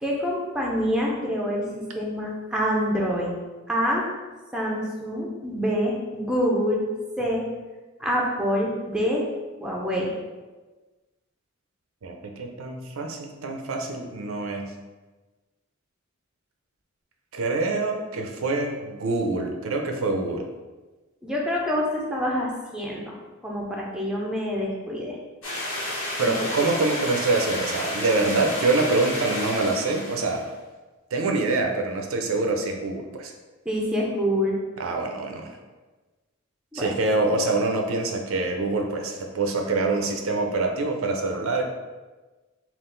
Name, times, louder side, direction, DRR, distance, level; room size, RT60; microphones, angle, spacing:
voice 1, 0.0-3.3 3.7-4.1 4.5-6.9 7.2-7.5 8.0-9.2 9.6-10.1 21.2-23.2 23.4-25.2 26.2-26.3 26.6-26.7 33.6-34.6 36.7-36.9, equal, 5° right, -3 dB, 0.6 m, -26 dB
voice 2, 12.0-14.7 17.3-20.5 26.2-30.4 31.1-33.3 34.8-35.5 36.7-41.6, right 3 dB, 75° right, 3 dB, 0.5 m, -25 dB
sound 1, 25.4-30.4, left 1 dB, 85° left, 1.3 m, -31 dB
3.7 x 2.4 x 3.8 m, 1.2 s
head